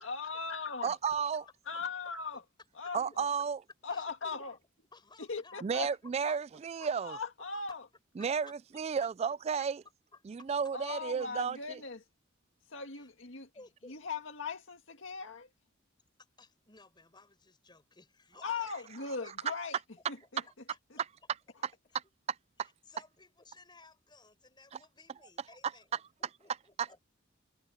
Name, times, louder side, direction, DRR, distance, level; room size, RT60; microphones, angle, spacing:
voice 1, 0.0-0.9 1.7-2.4 2.8-3.3 3.8-4.5 5.2-5.9 7.0-7.9 10.7-12.0 12.7-13.5 13.9-15.5 18.4-19.8 20.1-20.4, left 4 dB, 75° left, 2.0 m, -39 dB
voice 2, 0.8-1.4 2.9-3.6 5.6-7.1 8.2-9.8 10.3-11.8 26.8-26.9, right 6 dB, 30° right, 0.3 m, -33 dB
voice 3, 3.9-4.6 4.9-6.4 6.8-7.2 8.2-8.5 10.1-11.2 12.9-13.1 13.5-14.0 16.2-19.8 20.2-20.3 20.7-20.8 22.6-27.0, left 3 dB, 25° left, 5.5 m, -58 dB
head